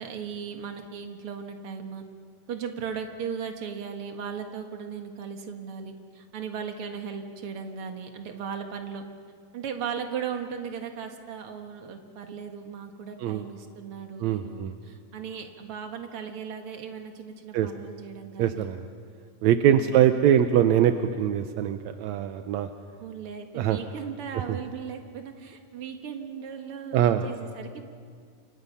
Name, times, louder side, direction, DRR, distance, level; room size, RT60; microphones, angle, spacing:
voice 1, 0.0-2.0 2.5-9.0 9.5-18.7 19.6-20.0 23.0-27.8, right 7 dB, 50° right, 5 dB, 2.1 m, -37 dB
voice 2, 14.2-14.7 17.5-17.7 18.4-18.9 19.4-22.7 23.6-23.8 26.9-27.3, right 10 dB, 80° right, 8 dB, 1.6 m, -22 dB
29.5 x 26.0 x 5.6 m, 2.1 s
omnidirectional pair, 4.0 m